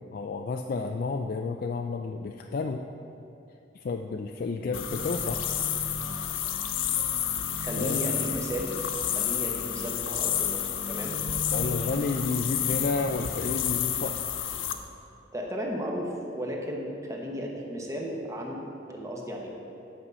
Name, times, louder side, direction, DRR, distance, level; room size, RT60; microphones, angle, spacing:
voice 1, 0.1-2.9 3.7-5.4 7.8-8.0 11.3-14.2, left 4 dB, 50° left, 4 dB, 0.3 m, -31 dB
sound 1, 4.6-13.6, right 2 dB, 65° left, 1.2 m, -40 dB
sound 2, 4.7-14.7, left 10 dB, 90° left, 0.6 m, -30 dB
voice 2, 7.6-8.7 9.1-10.6 10.9-11.2 15.3-19.5, equal, 15° right, 0 dB, 1.1 m, -34 dB
8.7 x 5.5 x 6.8 m, 2.8 s
head